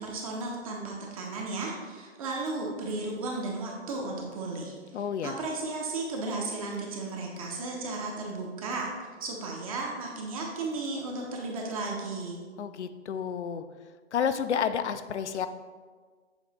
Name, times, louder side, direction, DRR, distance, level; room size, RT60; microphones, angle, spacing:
voice 1, 0.0-8.9 9.2-12.4, right 3 dB, 30° right, -1 dB, 0.8 m, -34 dB
voice 2, 4.9-5.3 12.6-13.6 14.1-15.5, left 7 dB, 70° left, 11 dB, 0.6 m, -30 dB
7.2 x 3.2 x 4.0 m, 1.5 s
hypercardioid pair, 145°, 36 cm